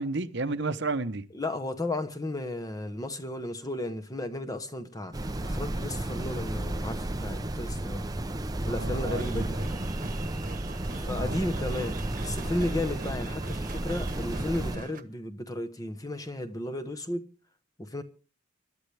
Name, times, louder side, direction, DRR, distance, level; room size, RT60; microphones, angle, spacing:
voice 1, 0.0-1.2 8.7-9.5 11.2-11.4, right 3 dB, 55° right, 0.9 m, -32 dB
voice 2, 1.3-5.2 5.4-8.1 8.6-9.6 10.9-17.3 17.8-18.0, left 1 dB, 15° left, 1.0 m, -34 dB
sound 1, 5.1-14.8, right 1 dB, 20° right, 0.6 m, -33 dB
sound 2, 9.1-15.0, right 3 dB, 40° right, 1.3 m, -42 dB
25.0 x 11.5 x 3.4 m
head